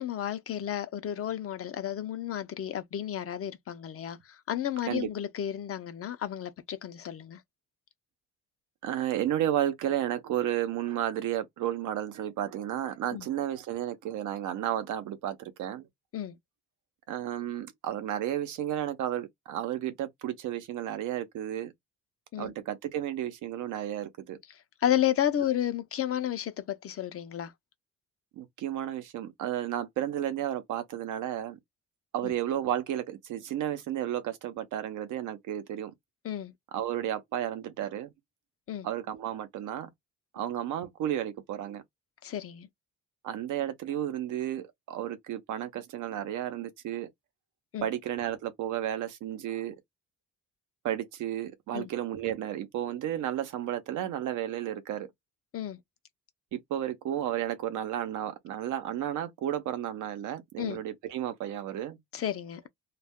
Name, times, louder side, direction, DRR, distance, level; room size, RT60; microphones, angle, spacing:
voice 1, 0.0-7.4 13.1-13.3 16.1-16.4 22.3-22.5 24.8-27.5 32.2-32.3 36.2-36.5 38.7-38.9 42.2-42.7 47.7-47.9 51.7-51.9 55.5-55.8 60.6-60.8 62.1-62.7, left 11 dB, 50° left, 0.5 m, -32 dB
voice 2, 8.8-15.9 17.1-21.7 22.4-24.4 28.4-31.6 32.1-35.9 36.7-38.1 38.8-39.9 40.3-41.8 43.2-47.1 47.8-49.7 50.8-55.1 56.5-62.0, right 11 dB, 80° right, 0.7 m, -32 dB
2.3 x 2.1 x 3.5 m
cardioid pair, 90°, 30 cm